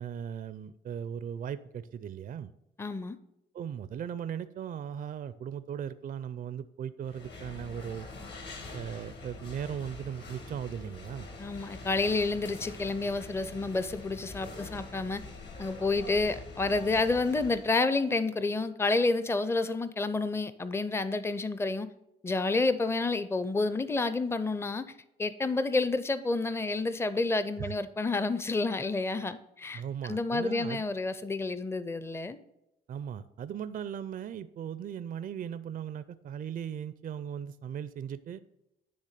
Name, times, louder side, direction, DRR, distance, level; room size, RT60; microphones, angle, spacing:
voice 1, 0.0-2.5 3.5-8.1 8.7-11.3 27.6-27.7 29.7-30.8 32.9-38.4, right 8 dB, 45° right, 14 dB, 0.4 m, -38 dB
voice 2, 2.8-3.2 11.4-15.2 15.6-21.9 22.2-24.8 25.2-32.4, left 3 dB, 10° left, 13 dB, 0.5 m, -29 dB
sound 1, 7.0-17.8, left 3 dB, 60° left, 1.7 m, -45 dB
10.0 x 3.4 x 6.6 m, 0.85 s
cardioid pair, 90°, 20 cm